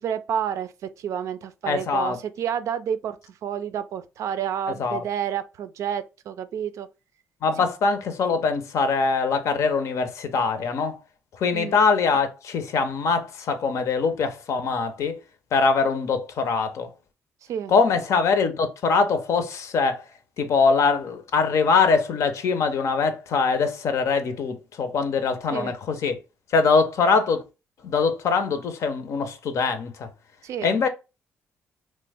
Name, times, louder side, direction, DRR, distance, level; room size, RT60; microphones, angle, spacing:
voice 1, 0.0-3.2 3.4-6.9 11.5-11.8 17.5-17.7 25.5-25.7 30.4-30.7, right 8 dB, 70° right, 0.4 m, -29 dB
voice 2, 1.6-2.2 4.8-5.0 7.4-11.0 11.4-15.2 15.5-16.9 17.7-20.1 20.4-26.1 26.5-27.4 27.8-30.1 30.6-30.9, left 4 dB, 65° left, 0.6 m, -23 dB
3.0 x 2.1 x 3.4 m
cardioid pair, 90°, 5 cm